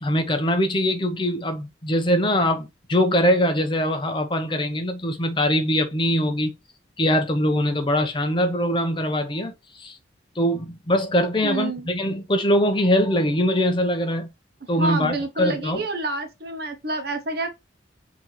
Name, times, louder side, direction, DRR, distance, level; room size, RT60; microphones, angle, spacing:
voice 1, 0.0-6.5 7.0-10.0 10.4-14.3 14.7-15.9, equal, 25° left, 0.7 m, -22 dB
voice 2, 11.4-11.9 14.8-17.5, right 2 dB, 55° right, 1.0 m, -28 dB
6.0 x 2.9 x 3.0 m
head